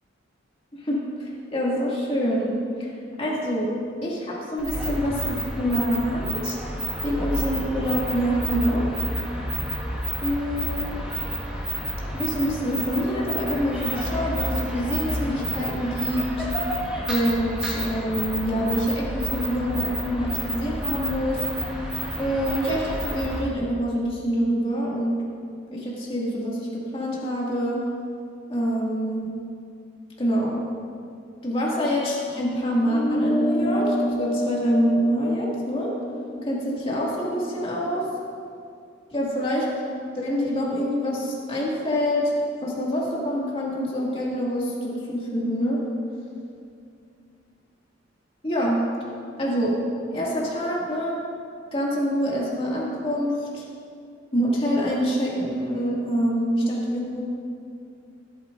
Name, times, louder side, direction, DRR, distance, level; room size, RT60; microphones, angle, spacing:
voice 1, 0.8-2.5 2.8-2.9 3.2-3.7 4.0-6.6 7.0-8.8 10.2-10.9 12.1-16.5 17.1-21.4 22.2-25.2 25.7-27.8 28.5-29.3 30.2-30.6 31.4-35.9 36.4-38.1 39.1-39.7 40.1-42.3 42.6-45.8 48.4-48.8 49.4-49.8 50.1-51.2 51.7-53.6 54.3-57.2, equal, 30° left, -5 dB, 2.0 m, -26 dB
sound 1, 4.6-23.5, right 1 dB, 5° right, 1.5 m, -30 dB
sound 2, 32.9-37.7, equal, 90° left, 2.7 m, -28 dB
15.5 x 8.9 x 2.5 m, 2.4 s
head